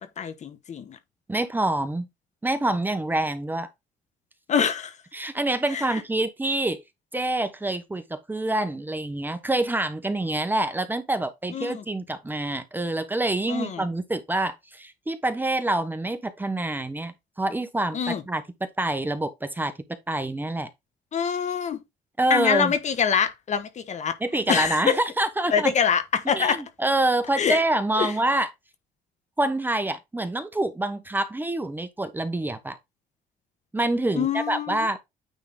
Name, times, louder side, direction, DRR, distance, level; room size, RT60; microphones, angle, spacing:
voice 1, 0.2-1.0 4.5-5.0 5.7-6.0 11.5-11.8 13.5-13.8 17.9-18.2 21.1-21.8 22.3-24.2 24.5-25.0 25.5-26.6 27.4-27.6 28.0-28.1 34.1-34.9, left 7 dB, 45° left, 1.3 m, -25 dB
voice 2, 1.3-2.1 2.4-3.7 5.1-6.8 7.1-18.4 18.8-19.7 20.1-20.7 22.2-22.7 24.2-25.7 26.3-28.5 29.4-32.8 33.7-35.0, right 2 dB, 10° right, 1.0 m, -26 dB
9.2 x 3.6 x 3.8 m
cardioid pair, 110°, 17 cm